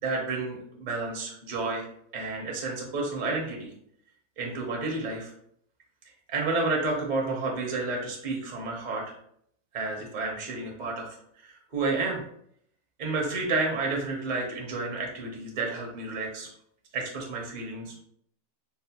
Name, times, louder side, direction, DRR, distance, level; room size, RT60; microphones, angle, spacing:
voice 1, 0.0-1.9 2.1-3.7 4.4-5.3 6.3-9.1 9.7-11.1 11.4-12.2 13.0-16.5 16.9-17.9, right 3 dB, 45° right, -1 dB, 0.5 m, -30 dB
4.6 x 2.0 x 2.8 m, 0.68 s
omnidirectional pair, 1.8 m